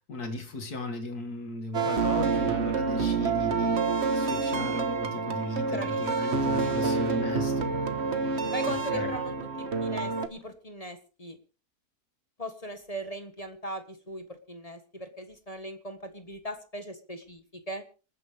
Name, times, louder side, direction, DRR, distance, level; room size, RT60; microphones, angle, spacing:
voice 1, 0.1-3.9 4.1-7.7 8.7-9.1, left 2 dB, 80° left, 6 dB, 2.7 m, -36 dB
sound 1, 1.7-10.3, right 4 dB, 45° right, 1.4 m, -28 dB
voice 2, 5.7-6.7 7.1-7.2 8.5-11.4 12.4-17.8, equal, 25° left, 7 dB, 1.4 m, -39 dB
26.5 x 9.7 x 3.4 m, 0.35 s
omnidirectional pair, 1.6 m